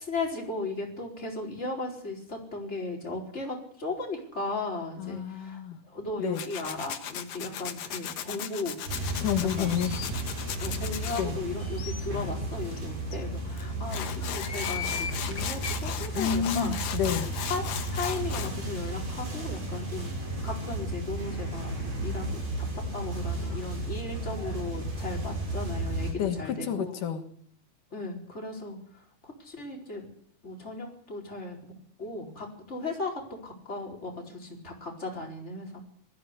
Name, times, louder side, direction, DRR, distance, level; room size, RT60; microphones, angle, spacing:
voice 1, 0.0-5.6 5.9-8.8 9.6-9.8 10.6-16.8 17.5-20.1 20.4-21.7 22.0-26.9 27.9-28.8 29.4-30.1 30.4-31.7 32.0-35.8, left 3 dB, 20° left, 0 dB, 4.6 m, -36 dB
voice 2, 5.0-5.8 6.2-6.5 9.2-10.1 11.2-11.4 16.1-17.3 26.2-27.3, left 8 dB, 85° left, 6 dB, 3.2 m, -30 dB
Tools, 6.3-11.2 13.6-13.7 13.9-18.5, left 9 dB, 65° left, 2.4 m, -36 dB
sound 1, 8.9-26.1, right 1 dB, 60° right, 7.9 m, -34 dB
sound 2, 9.6-10.1 10.7-10.8 11.1-11.2 11.6-12.0 12.7-12.8 13.1-13.2 14.2-15.8, left 6 dB, 40° left, 3.4 m, -37 dB
20.0 x 14.0 x 9.8 m, 0.63 s
omnidirectional pair, 3.6 m